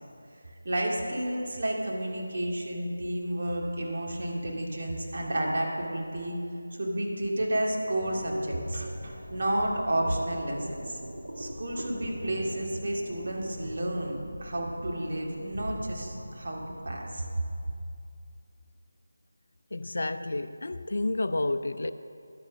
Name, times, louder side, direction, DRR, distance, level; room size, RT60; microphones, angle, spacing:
voice 1, 0.6-6.4 6.8-11.0 11.4-17.3, right 1 dB, 55° right, -2 dB, 2.3 m, -31 dB
sound 1, 7.8-17.2, equal, 90° right, 2.6 m, -42 dB
voice 2, 19.7-21.9, left 2 dB, 65° left, 9 dB, 0.5 m, -30 dB
11.0 x 8.9 x 6.3 m, 2.5 s
figure-of-eight pair, 165°, 0 cm